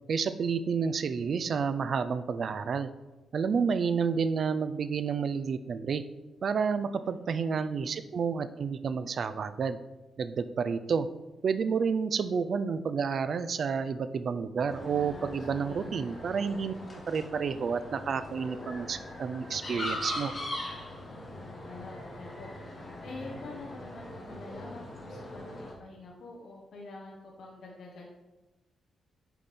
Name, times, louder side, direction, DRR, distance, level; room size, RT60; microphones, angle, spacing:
voice 1, 0.1-2.9 3.3-6.0 6.4-9.8 10.2-11.1 11.4-16.7 17.1-20.3, right 6 dB, 45° right, 11 dB, 0.4 m, -30 dB
voice 2, 6.7-7.7 15.7-15.9 20.9-22.5 23.0-28.1, left 3 dB, 65° left, -3 dB, 1.2 m, -47 dB
sound 1, 14.7-25.7, left 1 dB, 30° left, 1.5 m, -41 dB
8.2 x 5.2 x 4.3 m, 1.1 s
wide cardioid pair, 160°, 0 cm